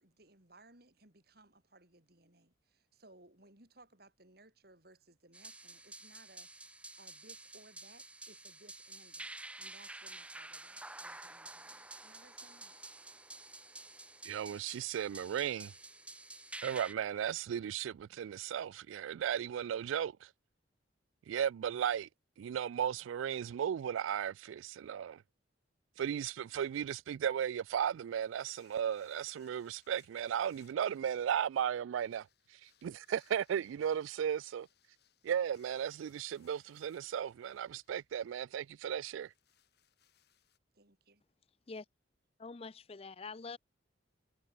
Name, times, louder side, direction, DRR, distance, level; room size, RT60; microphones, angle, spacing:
voice 1, 0.0-6.5 7.0-12.8 40.7-41.2, right 2 dB, 50° right, 5.1 m, -62 dB
sound 1, 5.3-16.9, right 2 dB, 5° right, 0.9 m, -50 dB
voice 2, 14.2-15.7 16.6-20.2 21.3-22.1 22.4-25.2 26.0-32.3 32.8-34.7 35.2-39.3, right 9 dB, 85° right, 0.3 m, -35 dB
sound 2, 27.9-40.6, left 10 dB, 55° left, 4.8 m, -72 dB
voice 3, 42.4-43.6, left 4 dB, 30° left, 0.5 m, -45 dB
head